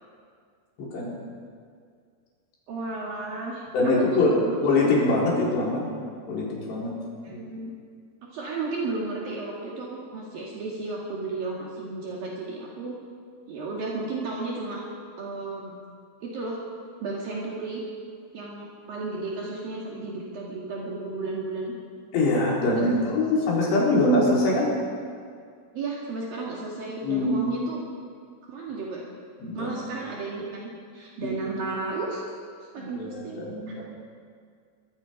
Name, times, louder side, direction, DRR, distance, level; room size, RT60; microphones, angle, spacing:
voice 1, 0.8-1.2 3.7-4.3 4.6-5.9 6.3-6.9 7.3-7.4 22.1-24.7 27.0-27.5 29.4-29.7 31.2-31.3 32.8-33.8, left 2 dB, 85° left, -4 dB, 6.4 m, -23 dB
voice 2, 2.7-4.6 7.2-7.7 8.3-13.0 13.5-14.8 15.2-15.7 16.2-16.6 17.0-17.8 18.3-21.7 22.7-23.1 25.7-27.8 28.5-29.1 29.6-32.2 32.7-33.5, right 3 dB, 60° right, -4 dB, 3.9 m, -33 dB
24.5 x 20.0 x 5.3 m, 2.1 s
omnidirectional pair, 4.8 m